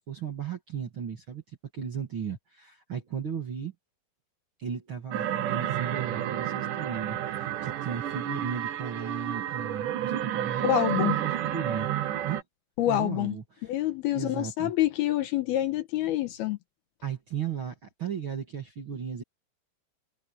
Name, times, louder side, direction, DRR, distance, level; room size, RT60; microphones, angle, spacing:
voice 1, 0.0-3.7 4.6-11.9 12.2-12.4 12.9-13.7 14.1-14.7 17.0-19.2, right 7 dB, 45° right, 1.9 m, -36 dB
sound 1, 5.1-12.4, right 11 dB, 65° right, 2.2 m, -30 dB
voice 2, 10.6-11.2 12.8-13.4 13.6-16.6, left 13 dB, 70° left, 2.9 m, -27 dB
omnidirectional pair, 4.9 m